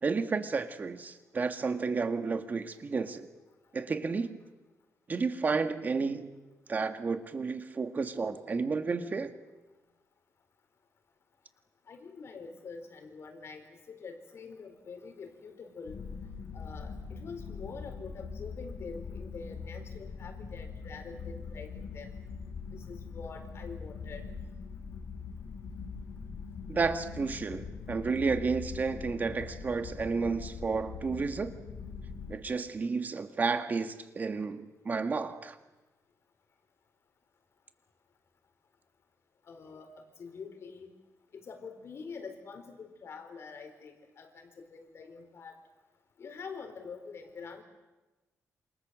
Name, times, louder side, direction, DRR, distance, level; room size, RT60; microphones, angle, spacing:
voice 1, 0.0-3.3 3.7-4.4 5.1-6.3 6.7-9.3 26.7-31.5 32.3-35.6, right 4 dB, 30° right, 8 dB, 1.9 m, -31 dB
voice 2, 11.9-16.0 16.5-22.1 22.7-24.3 39.5-39.9 40.2-40.9 41.3-45.6 46.2-47.6, left 5 dB, 50° left, 6 dB, 4.4 m, -45 dB
sound 1, 15.8-32.4, left 5 dB, 90° left, 5.4 m, -42 dB
28.5 x 27.0 x 7.7 m, 1.1 s
wide cardioid pair, 160°, 6 cm